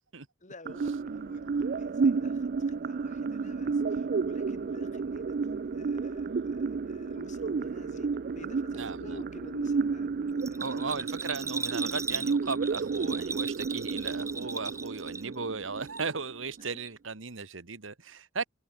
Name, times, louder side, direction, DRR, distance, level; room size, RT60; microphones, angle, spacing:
voice 1, 0.4-11.1 16.6-16.8, left 1 dB, 40° left, 6.1 m, -51 dB
sound 1, 0.7-16.6, right 4 dB, 50° right, 0.4 m, -32 dB
voice 2, 8.7-9.2 10.6-18.5, right 4 dB, 75° right, 1.7 m, -36 dB
Bell, 10.4-15.5 15.8-16.6 16.8-16.9, right 4 dB, 15° right, 1.9 m, -37 dB
head